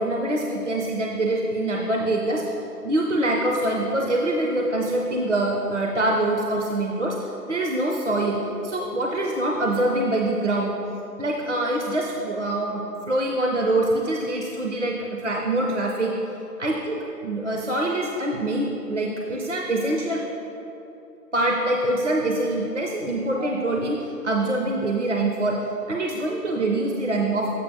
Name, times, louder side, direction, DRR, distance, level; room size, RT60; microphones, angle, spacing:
voice 1, 0.0-10.7 11.2-16.1 16.6-20.2 21.3-25.6 25.9-27.5, right 1 dB, 50° right, 0 dB, 0.5 m, -24 dB
7.6 x 4.6 x 4.7 m, 3.0 s
figure-of-eight pair, 155°, 49 cm